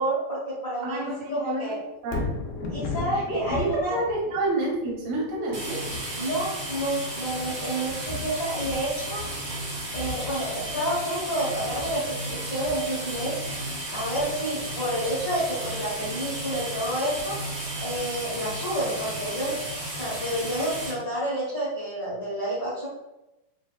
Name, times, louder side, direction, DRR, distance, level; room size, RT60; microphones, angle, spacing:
voice 1, 0.0-1.8 2.7-4.0 6.2-9.2 9.9-13.3 13.9-17.3 17.8-19.6 19.9-22.9, right 1 dB, 60° left, -10 dB, 0.8 m, -29 dB
voice 2, 0.8-1.7 2.0-2.2 3.3-5.8, right 2 dB, 85° right, -3 dB, 2.9 m, -28 dB
Thunder, 2.0-16.2 16.7-16.8, left 3 dB, 80° left, 2.3 m, -38 dB
sound 1, 5.5-20.9, right 1 dB, 65° right, 1.1 m, -34 dB
6.9 x 2.3 x 2.3 m, 0.96 s
omnidirectional pair, 4.2 m